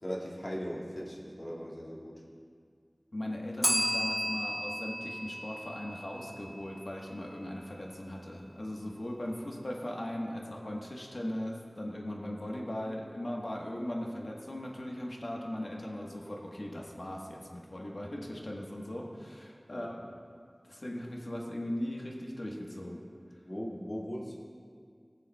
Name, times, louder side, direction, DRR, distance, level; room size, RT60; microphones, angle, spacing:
voice 1, 0.0-2.2 19.7-19.9 23.4-24.4, equal, 55° left, -6 dB, 2.1 m, -39 dB
voice 2, 3.1-20.0 20.7-23.0, left 1 dB, 75° left, -1 dB, 1.3 m, -38 dB
Bell, 3.6-6.4, equal, 5° left, 1.9 m, -33 dB
20.5 x 7.1 x 2.3 m, 2.2 s
wide cardioid pair, 45°, 0 cm